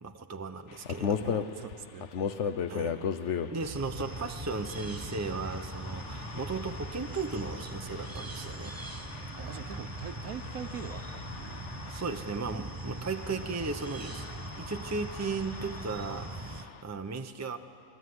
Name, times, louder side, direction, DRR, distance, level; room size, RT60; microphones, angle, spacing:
voice 1, 0.0-1.4 2.7-2.9 3.4-8.8 11.9-17.6, right 4 dB, 15° right, 6 dB, 0.7 m, -36 dB
sound 1, 0.7-16.8, left 7 dB, 55° left, 1.1 m, -38 dB
voice 2, 1.2-2.1 9.4-11.6, right 8 dB, 75° right, 9 dB, 1.4 m, -43 dB
sound 2, 3.6-16.6, right 3 dB, 30° right, 0.4 m, -41 dB
27.0 x 21.5 x 9.7 m, 2.6 s
omnidirectional pair, 1.6 m